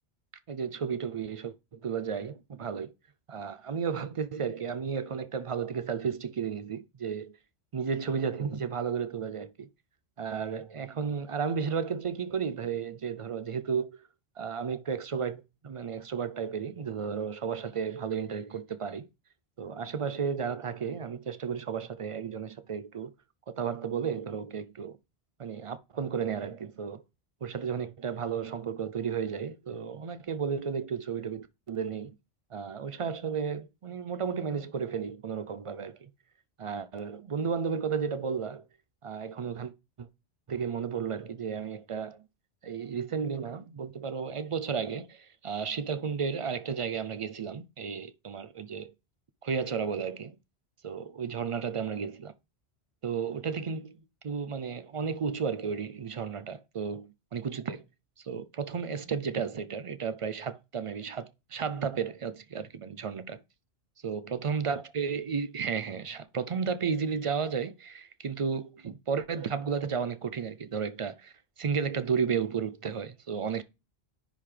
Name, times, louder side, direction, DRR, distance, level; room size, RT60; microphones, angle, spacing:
voice 1, 0.5-1.5 1.8-2.9 3.3-7.4 7.7-9.7 10.2-14.0 14.4-19.1 19.6-23.1 23.5-25.0 25.4-27.0 27.4-32.1 32.5-36.1 36.6-38.6 39.0-39.7 40.0-40.1 40.5-42.2 42.6-48.9 49.4-50.4 50.8-52.3 53.0-54.0 54.2-57.8 58.2-63.4 64.0-73.6, right 6 dB, 50° right, 0.4 m, -33 dB
10.0 x 3.7 x 3.3 m
omnidirectional pair, 1.1 m